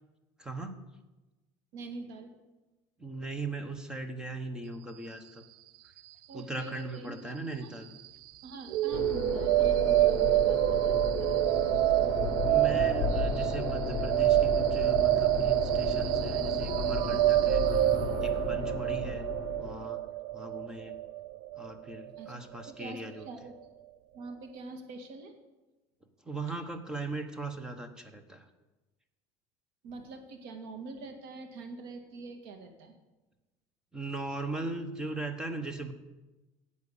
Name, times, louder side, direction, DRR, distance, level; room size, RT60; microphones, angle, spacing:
voice 1, 0.4-0.8 3.0-5.4 6.3-7.9 12.4-17.9 18.2-19.3 19.6-20.0 20.3-21.0 21.5-23.3 26.2-28.5 33.9-35.9, right 2 dB, 5° right, 8 dB, 0.9 m, -39 dB
voice 2, 1.7-2.3 6.3-7.7 8.4-11.4 22.2-23.7 24.1-25.3 29.8-32.9, right 3 dB, 75° right, 6 dB, 2.1 m, -45 dB
sound 1, 8.7-22.7, right 15 dB, 50° right, 0.4 m, -27 dB
sound 2, 8.9-19.9, left 8 dB, 45° left, 0.9 m, -35 dB
10.5 x 8.3 x 8.3 m, 1.1 s
cardioid pair, 175°, 10 cm